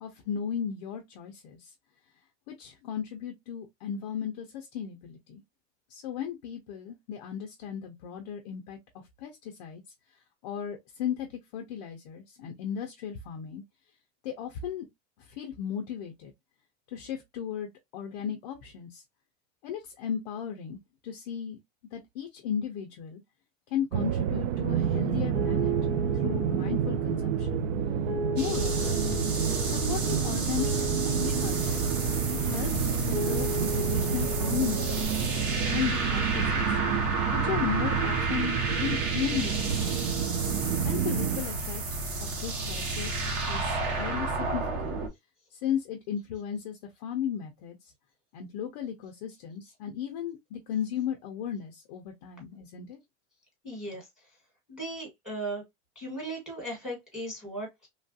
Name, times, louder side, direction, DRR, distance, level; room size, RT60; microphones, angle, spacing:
voice 1, 0.0-1.7 2.5-5.4 5.9-8.8 9.2-9.8 10.4-11.3 11.5-13.6 14.2-14.9 15.4-16.3 16.9-19.0 19.6-20.8 21.0-21.6 21.9-23.2 23.7-25.7 26.2-27.6 28.4-29.0 29.6-31.9 32.4-35.2 35.6-36.7 37.3-40.0 40.8-41.8 42.2-45.0 45.6-47.8 48.3-53.0, left 9 dB, 35° left, 0.4 m, -35 dB
sound 1, 23.9-41.4, right 10 dB, 90° right, 0.5 m, -30 dB
Piano, 24.7-35.0, equal, 65° right, 1.0 m, -34 dB
sound 2, 28.4-45.1, right 2 dB, 45° right, 1.0 m, -31 dB
voice 2, 53.6-54.1 54.7-55.6 55.9-57.9, right 1 dB, ahead, 1.2 m, -37 dB
3.1 x 2.3 x 2.5 m
supercardioid pair, 175°, 37 cm